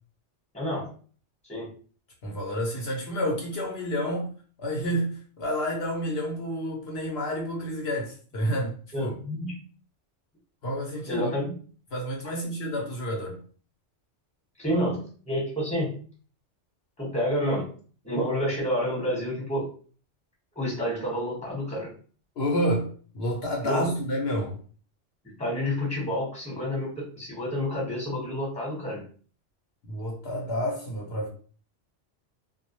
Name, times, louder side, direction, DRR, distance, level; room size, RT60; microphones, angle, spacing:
voice 1, 0.5-0.9 1.5-1.7 8.9-9.6 11.1-11.5 14.6-15.0 15.3-15.9 17.0-17.6 18.0-19.7 20.5-21.9 23.6-23.9 25.4-29.0, equal, 5° left, 1.0 m, -29 dB
voice 2, 2.2-4.3 4.6-9.2 10.6-11.3 11.9-13.4 22.4-24.6 29.8-31.3, equal, 65° left, 0.9 m, -29 dB
2.3 x 2.1 x 2.9 m
omnidirectional pair, 1.2 m